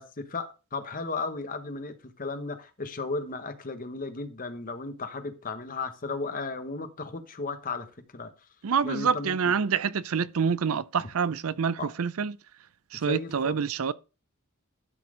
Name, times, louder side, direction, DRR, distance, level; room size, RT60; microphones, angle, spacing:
voice 1, 0.0-8.3 8.8-9.5 11.0-11.1 11.8-11.9 13.0-13.6, left 3 dB, 40° left, 1.1 m, -35 dB
voice 2, 8.6-12.3 12.9-13.9, right 6 dB, 70° right, 0.5 m, -27 dB
12.0 x 4.3 x 5.0 m
head